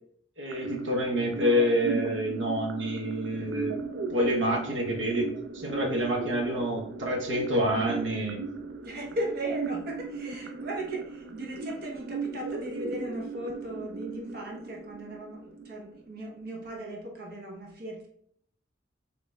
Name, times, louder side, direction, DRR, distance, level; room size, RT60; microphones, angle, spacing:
voice 1, 0.4-3.7 4.1-8.4, equal, 85° right, 0 dB, 1.0 m, -27 dB
sound 1, 0.5-16.5, right 4 dB, 70° right, 0.4 m, -37 dB
voice 2, 8.8-18.1, right 1 dB, 50° right, -1 dB, 0.9 m, -37 dB
5.0 x 3.1 x 2.2 m, 0.69 s
head